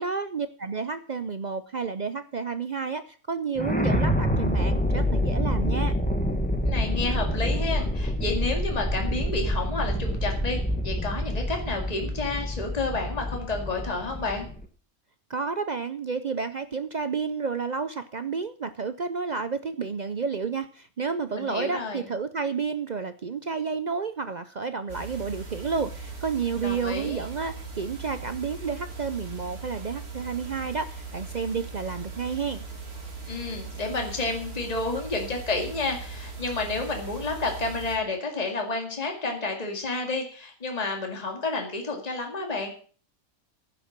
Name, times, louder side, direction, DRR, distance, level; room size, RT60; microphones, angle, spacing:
voice 1, 0.0-5.9 15.3-32.6, right 5 dB, 60° right, 11 dB, 0.4 m, -31 dB
sound 1, 3.6-14.6, equal, 5° left, 1.1 m, -27 dB
voice 2, 6.6-14.5 21.3-22.1 26.6-27.2 33.3-42.7, left 3 dB, 25° left, 2 dB, 2.2 m, -30 dB
sound 2, 24.9-38.0, right 4 dB, 85° right, 3.1 m, -39 dB
11.0 x 7.5 x 7.4 m, 0.42 s
omnidirectional pair, 1.5 m